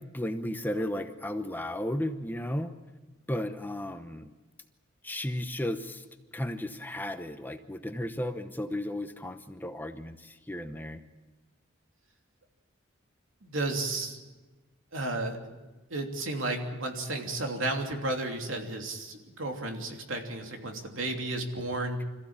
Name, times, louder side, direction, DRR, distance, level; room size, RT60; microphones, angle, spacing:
voice 1, 0.0-2.7 3.3-4.3 5.0-6.0 6.3-11.0, left 1 dB, 10° left, 8 dB, 0.9 m, -34 dB
voice 2, 13.4-14.2 14.9-15.4 15.9-22.0, right 2 dB, 75° right, 3 dB, 3.0 m, -33 dB
26.0 x 15.0 x 8.8 m, 1.2 s
head